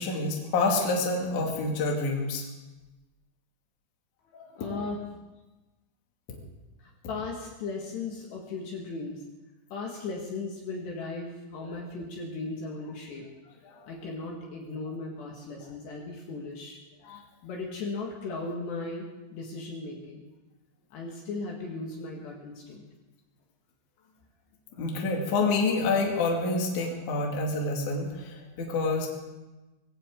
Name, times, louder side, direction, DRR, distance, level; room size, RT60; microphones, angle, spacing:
voice 1, 0.0-2.4 4.3-4.5 13.6-13.9 17.0-17.2 24.7-29.1, left 3 dB, 45° left, -1 dB, 3.1 m, -28 dB
voice 2, 4.5-5.0 6.8-9.2 9.7-13.2 13.9-16.8 17.4-20.3 20.9-22.8, left 3 dB, 65° left, -1 dB, 3.6 m, -37 dB
21.5 x 16.5 x 3.8 m, 1.1 s
omnidirectional pair, 5.8 m